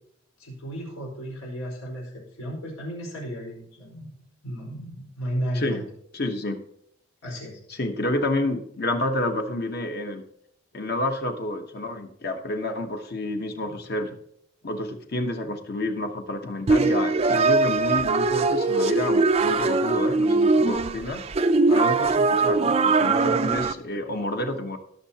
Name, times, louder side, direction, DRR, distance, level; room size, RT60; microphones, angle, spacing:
voice 1, 0.4-5.8 7.2-7.6 13.6-13.7, equal, 90° left, -1 dB, 4.4 m, -34 dB
voice 2, 6.1-6.6 7.7-10.2 10.7-14.2 14.6-21.2 21.7-24.8, left 1 dB, 50° left, 5 dB, 1.0 m, -29 dB
sound 1, 16.7-23.7, right 3 dB, 30° right, 0.3 m, -21 dB
19.0 x 6.5 x 2.8 m, 0.71 s
head